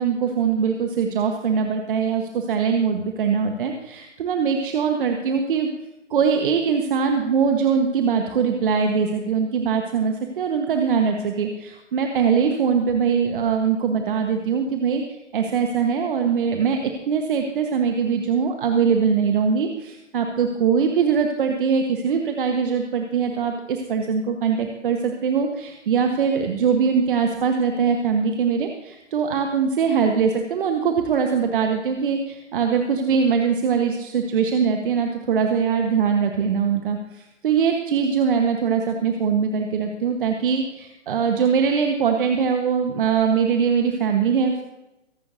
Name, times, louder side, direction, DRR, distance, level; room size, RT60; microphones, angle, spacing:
voice 1, 0.0-5.7 6.1-44.6, right 6 dB, 45° right, 4 dB, 1.3 m, -22 dB
23.0 x 11.0 x 2.7 m, 0.98 s
figure-of-eight pair, 130°, 37 cm